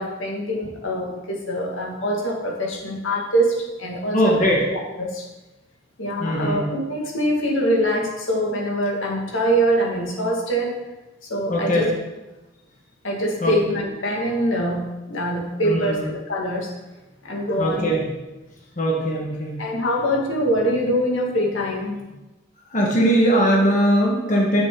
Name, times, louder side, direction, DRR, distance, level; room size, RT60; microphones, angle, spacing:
voice 1, 0.0-5.2 6.0-10.8 11.2-11.9 13.0-16.7 17.2-17.9 19.6-22.0, equal, 80° left, -1 dB, 2.1 m, -24 dB
voice 2, 4.1-4.6 6.2-6.6 11.5-11.9 13.4-13.5 15.6-16.1 17.6-18.0 18.8-19.6 22.7-24.6, equal, 40° left, -2 dB, 1.7 m, -20 dB
10.0 x 8.4 x 3.9 m, 1.1 s
head